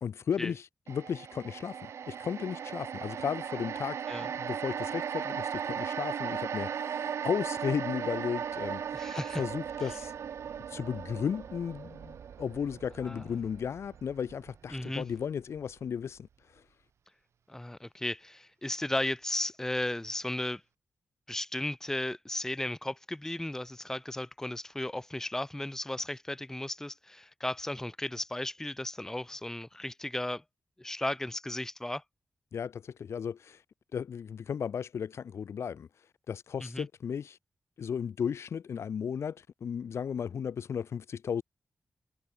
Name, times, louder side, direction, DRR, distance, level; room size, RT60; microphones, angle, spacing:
voice 1, 0.0-4.0 4.4-9.0 9.4-10.1 10.7-16.3 32.5-33.6 33.9-35.9 36.3-37.4 37.8-41.4, left 7 dB, 80° left, 0.5 m, -35 dB
sound 1, 0.9-15.2 15.6-15.7, right 8 dB, 85° right, 0.5 m, -37 dB
voice 2, 8.9-9.4 13.0-13.4 14.7-15.1 17.5-20.6 21.3-30.4 30.8-32.0 36.6-36.9, left 1 dB, 10° left, 0.5 m, -35 dB
cardioid pair, 55°, 5 cm